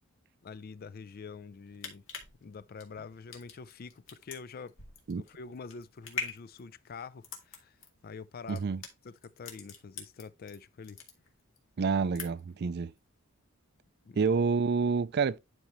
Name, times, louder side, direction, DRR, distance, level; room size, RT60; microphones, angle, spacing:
voice 1, 0.4-2.0 2.4-4.7 5.1-7.8 8.0-8.6 9.0-11.0 14.0-14.3, left 5 dB, 45° left, 0.4 m, -46 dB
sound 1, 1.5-10.6 10.8-11.6 11.9-12.6 12.9-13.1, left 5 dB, 65° left, 2.1 m, -43 dB
voice 2, 8.5-8.8 11.8-12.9 14.2-15.4, right 5 dB, 50° right, 0.4 m, -28 dB
11.0 x 4.3 x 3.1 m
head